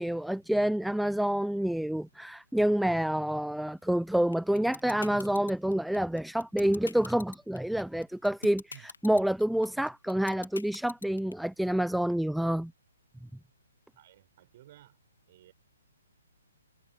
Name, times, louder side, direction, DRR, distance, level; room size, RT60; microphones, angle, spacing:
voice 1, 0.0-12.7, right 1 dB, ahead, 0.7 m, -28 dB
sound 1, 4.3-11.3, left 4 dB, 70° left, 1.9 m, -43 dB
voice 2, 13.9-15.0 15.3-15.5, right 14 dB, 45° right, 6.6 m, -56 dB
figure-of-eight pair, 125°, 0 cm